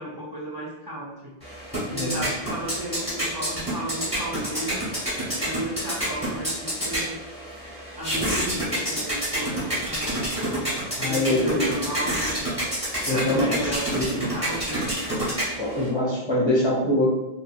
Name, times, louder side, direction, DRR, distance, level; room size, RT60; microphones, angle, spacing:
voice 1, 0.0-1.3 1.9-4.9 5.4-7.2 8.0-10.3 11.0-12.4 13.0-14.8, right 1 dB, 40° right, -7 dB, 0.3 m, -34 dB
sound 1, 1.4-15.9, right 1 dB, 5° right, 1.2 m, -29 dB
voice 2, 1.9-2.2 11.0-11.7 13.1-14.1 15.6-17.1, left 1 dB, 30° left, -5 dB, 0.6 m, -24 dB
2.6 x 2.5 x 2.5 m, 0.95 s
omnidirectional pair, 1.1 m